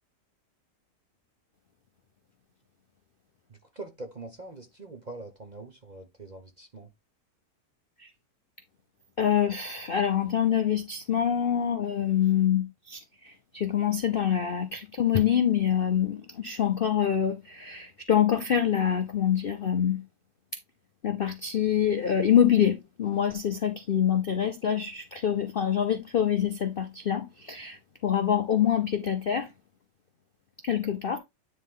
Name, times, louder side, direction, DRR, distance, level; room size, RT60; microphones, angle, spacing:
voice 1, 3.5-6.9, right 2 dB, 35° right, 0.8 m, -43 dB
voice 2, 9.2-20.0 21.0-29.5 30.6-31.2, left 9 dB, 55° left, 0.6 m, -25 dB
9.7 x 3.7 x 3.7 m
omnidirectional pair, 1.8 m